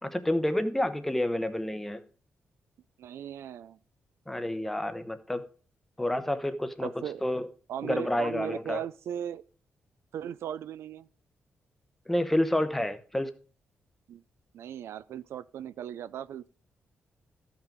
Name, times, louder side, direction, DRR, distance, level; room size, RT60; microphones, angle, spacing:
voice 1, 0.0-2.0 4.3-5.4 6.0-6.9 7.2-7.5 7.8-8.8 12.1-13.3, left 1 dB, 5° left, 0.8 m, -29 dB
voice 2, 3.0-3.8 6.8-7.2 7.7-9.4 10.1-11.1 14.1-14.2 14.5-16.5, right 10 dB, 80° right, 0.4 m, -37 dB
14.0 x 5.9 x 5.2 m
wide cardioid pair, 175°, 4 cm